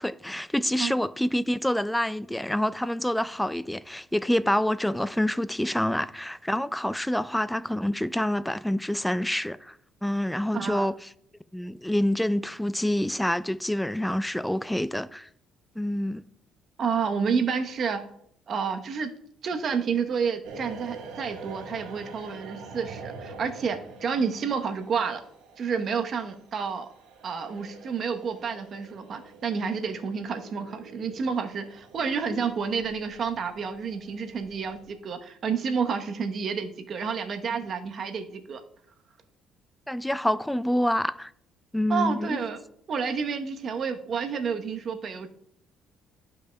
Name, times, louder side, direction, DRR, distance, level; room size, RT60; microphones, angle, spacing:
voice 1, 0.0-9.8 10.0-11.1 11.5-15.3 15.8-16.2 39.9-41.3 41.7-42.4, left 1 dB, 5° left, 0.3 m, -27 dB
voice 2, 10.5-10.9 16.8-18.1 18.5-19.1 19.4-25.2 25.6-26.9 27.2-38.6 41.9-42.6 42.9-45.3, right 6 dB, 50° right, 0.9 m, -30 dB
sound 1, 20.4-34.9, right 4 dB, 85° right, 1.4 m, -46 dB
12.0 x 5.5 x 2.2 m
cardioid pair, 90°, 0 cm